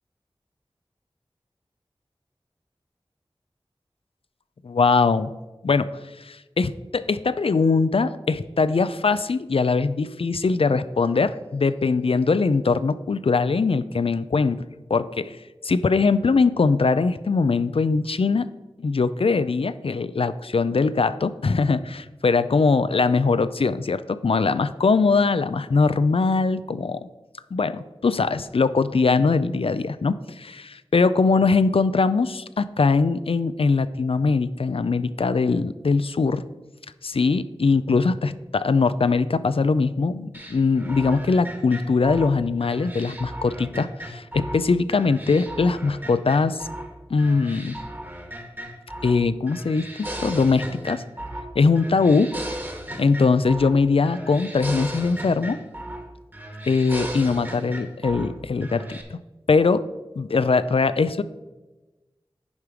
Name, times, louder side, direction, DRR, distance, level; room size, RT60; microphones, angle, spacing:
voice 1, 4.6-5.3 5.6-5.9 6.2-14.6 14.9-15.4 15.6-18.5 18.8-27.0 27.5-36.4 37.0-46.7 47.1-47.8 49.0-49.9 50.2-51.0 51.6-52.3 53.0-55.6 56.7-59.2 59.5-59.8 60.2-61.2, left 4 dB, 70° left, 14 dB, 0.4 m, -21 dB
sound 1, 40.3-44.6 44.9-46.9 47.2-49.2 49.5-51.5 51.8-53.8 54.0-56.1 56.3-58.3 58.6-59.0, right 1 dB, 20° right, 1.5 m, -36 dB
10.5 x 4.8 x 5.0 m, 1.1 s
wide cardioid pair, 50°, 10 cm